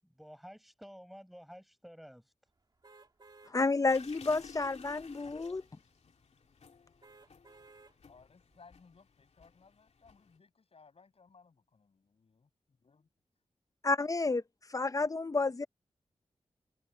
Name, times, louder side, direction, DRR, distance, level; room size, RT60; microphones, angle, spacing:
voice 1, 0.0-2.3, equal, ahead, 6.5 m, -52 dB
sound 1, 2.8-3.6 4.1-4.2 7.0-8.0 8.5-8.6, right 3 dB, 40° right, 2.5 m, -57 dB
voice 2, 3.5-5.6 13.8-14.4 14.7-15.7, left 3 dB, 30° left, 0.7 m, -30 dB
sound 2, 3.9-10.4, left 5 dB, 80° left, 2.4 m, -55 dB
voice 3, 8.1-12.5 12.8-13.1, left 4 dB, 65° left, 6.5 m, -61 dB
wide cardioid pair, 110°, 11 cm